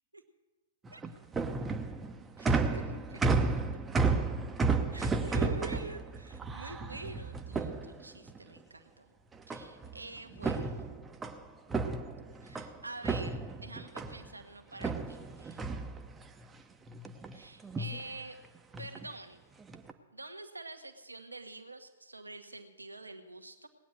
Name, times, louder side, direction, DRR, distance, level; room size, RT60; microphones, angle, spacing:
sound 1, 0.8-8.4 9.5-10.0 10.3-12.7 13.0-14.3 14.8-16.5 16.9-17.4 17.6-18.0 18.7-19.1 19.6-19.9, right 4 dB, 15° right, 0.9 m, -32 dB
voice 1, 2.4-3.4 4.9-9.1 9.5-10.8 12.4-15.7 17.3-18.4 18.8-19.4 20.1-23.7, right 2 dB, 85° right, 7 dB, 1.4 m, -46 dB
18.5 x 9.2 x 6.4 m, 1.3 s
figure-of-eight pair, 110°, 0 cm